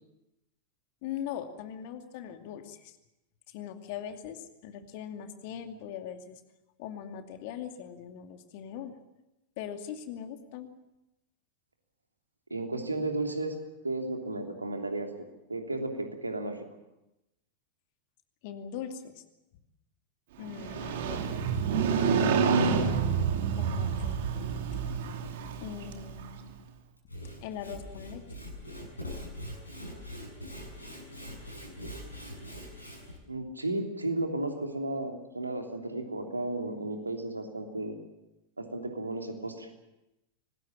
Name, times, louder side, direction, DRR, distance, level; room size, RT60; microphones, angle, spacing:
voice 1, 1.0-3.0 3.5-6.4 6.8-8.9 9.6-10.7 18.4-19.2 20.4-21.2 23.5-25.0 25.6-26.7 27.4-28.2, left 9 dB, 50° left, 6 dB, 2.4 m, -41 dB
voice 2, 12.5-15.1 15.5-16.6 33.3-38.0 38.6-39.7, right 2 dB, 80° right, 4 dB, 3.1 m, -34 dB
Motorcycle, 20.5-26.4, right 6 dB, 55° right, 2.5 m, -28 dB
Sawing / Wood, 27.0-33.2, equal, 85° left, 7.2 m, -42 dB
25.0 x 20.0 x 7.5 m, 0.93 s
figure-of-eight pair, 90°, 0 cm